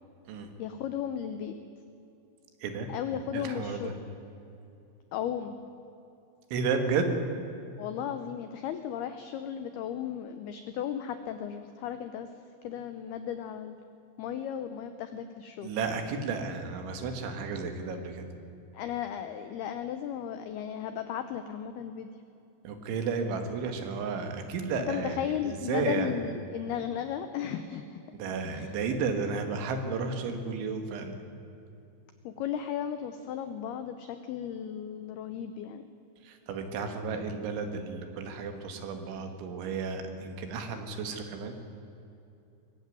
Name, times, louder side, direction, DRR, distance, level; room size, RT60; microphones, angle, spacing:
voice 1, 0.6-1.6 2.9-4.0 5.1-5.6 7.8-12.3 12.6-13.8 14.2-15.7 18.7-22.1 24.9-28.0 28.5-28.7 32.2-35.9, left 9 dB, 85° left, 9 dB, 2.2 m, -35 dB
voice 2, 2.6-2.9 3.3-3.9 6.5-7.1 15.6-18.3 22.6-25.2 25.4-26.1 28.1-31.1 36.2-41.5, right 5 dB, 75° right, 6 dB, 4.1 m, -32 dB
22.0 x 15.0 x 9.5 m, 2.8 s
omnidirectional pair, 5.7 m